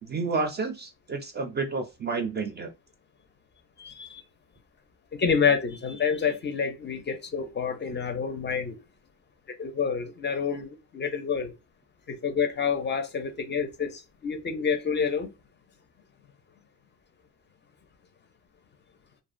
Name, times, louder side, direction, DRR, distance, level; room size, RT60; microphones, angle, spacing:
voice 1, 0.0-2.7, right 4 dB, 30° right, 0.4 m, -30 dB
voice 2, 3.8-4.2 5.2-8.8 9.5-11.5 12.1-15.3, left 6 dB, 30° left, 0.4 m, -28 dB
2.4 x 2.1 x 2.5 m
cardioid pair, 125°, 36 cm